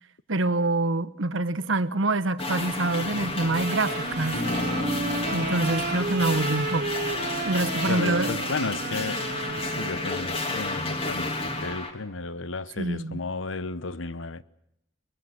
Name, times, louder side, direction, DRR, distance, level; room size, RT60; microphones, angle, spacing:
voice 1, 0.3-4.4 5.3-6.9 7.4-8.3 12.8-13.2, right 2 dB, 80° right, 1.2 m, -26 dB
sound 1, 2.4-11.9, left 2 dB, 30° left, 2.7 m, -31 dB
Wind instrument woodwind instrument, 3.5-10.4, right 3 dB, 45° right, 1.0 m, -33 dB
Bass guitar, 4.3-8.4, left 1 dB, 65° left, 7.0 m, -36 dB
voice 2, 7.9-14.4, left 3 dB, 85° left, 1.0 m, -34 dB
23.5 x 21.5 x 8.0 m
head